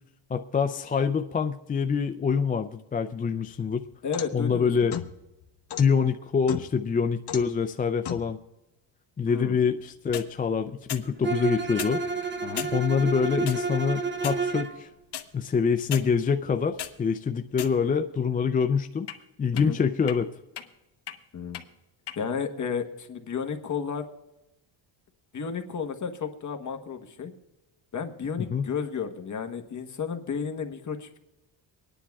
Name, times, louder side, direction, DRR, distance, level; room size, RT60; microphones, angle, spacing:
voice 1, 0.3-3.8 4.3-4.9 5.8-8.4 9.2-12.0 12.7-14.9 15.3-19.1 19.4-20.3 28.4-28.7, left 6 dB, 20° left, 7 dB, 0.3 m, -25 dB
sound 1, 3.5-4.4 4.9-5.9 6.5-6.9 7.3-7.6 8.0-8.3 9.9-10.3 10.9-11.1 11.7-12.0 12.6-12.7 13.5-13.6 14.2-14.4 15.1-15.2 15.9-16.0 16.5-16.9 17.5-18.0 19.1-19.2 19.6-19.7 20.1-20.2 20.6-20.7 21.1-21.2 21.5-21.6 22.1-22.2, left 10 dB, 55° left, 1.0 m, -35 dB
voice 2, 4.0-5.0 9.3-9.5 12.4-12.7 19.5-19.8 21.3-21.6 22.2-24.1 25.3-27.3 27.9-31.2, left 6 dB, 35° left, 5 dB, 1.2 m, -32 dB
Bowed string instrument, 11.2-14.8, right 4 dB, 25° right, 0.8 m, -30 dB
25.0 x 10.0 x 2.3 m, 0.95 s
cardioid pair, 115°, 49 cm